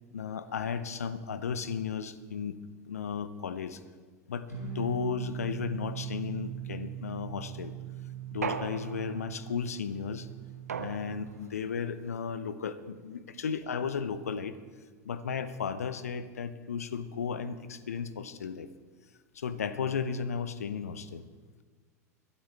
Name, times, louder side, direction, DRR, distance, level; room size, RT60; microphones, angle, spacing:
voice 1, 0.1-2.6 2.9-3.8 4.3-7.7 8.3-10.3 10.8-14.6 15.0-18.7 19.3-21.2, left 6 dB, 70° left, 13 dB, 0.8 m, -34 dB
sound 1, 4.5-11.3, right 8 dB, 85° left, 3.0 m, -40 dB
sound 2, 8.4-9.4 10.7-11.5, right 6 dB, 75° right, 0.6 m, -37 dB
21.5 x 12.5 x 3.4 m, 1.5 s
figure-of-eight pair, 80°, 8 cm